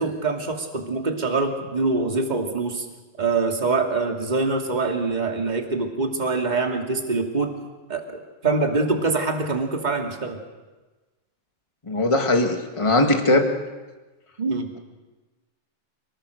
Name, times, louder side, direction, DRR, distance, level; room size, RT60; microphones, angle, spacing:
voice 1, 0.0-2.9 3.2-7.6 7.9-8.0 8.4-10.4 14.4-14.7, right 3 dB, 15° right, 2 dB, 2.0 m, -24 dB
voice 2, 11.8-13.5, left 2 dB, 15° left, 3 dB, 1.0 m, -20 dB
29.0 x 20.0 x 6.6 m, 1.2 s
omnidirectional pair, 4.0 m